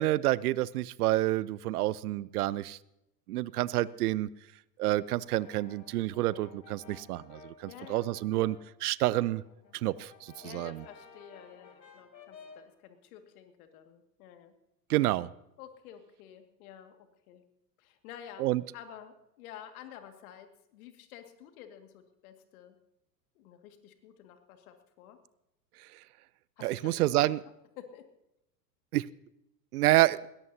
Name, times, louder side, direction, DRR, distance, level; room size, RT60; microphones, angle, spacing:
voice 1, 0.0-2.8 3.3-4.3 4.8-9.4 9.8-10.8 14.9-15.3 18.4-18.6 26.6-27.4 28.9-29.1 29.7-30.2, right 16 dB, 65° right, 21 dB, 0.7 m, -28 dB
Brass instrument, 5.1-8.8 9.1-12.8, left 5 dB, 85° left, 1.6 m, -55 dB
voice 2, 7.7-8.4 9.1-9.3 10.4-14.5 15.6-17.0 17.3-17.4 17.8-18.5 18.7-22.8 23.4-25.2 26.6-27.3 27.8-28.1, left 9 dB, 55° left, 6 dB, 2.2 m, -50 dB
21.0 x 17.5 x 2.8 m, 0.85 s
figure-of-eight pair, 90°, 50 cm